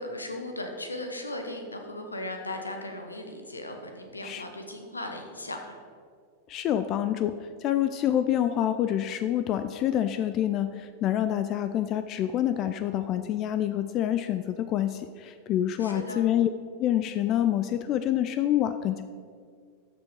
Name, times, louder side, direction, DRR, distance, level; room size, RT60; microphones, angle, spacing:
voice 1, 0.0-5.8 15.8-16.3, left 1 dB, 80° left, 4 dB, 1.1 m, -37 dB
voice 2, 6.5-16.5 16.8-19.0, left 11 dB, 35° left, 11 dB, 0.4 m, -27 dB
13.0 x 5.2 x 4.8 m, 2.1 s
figure-of-eight pair, 90°, 0 cm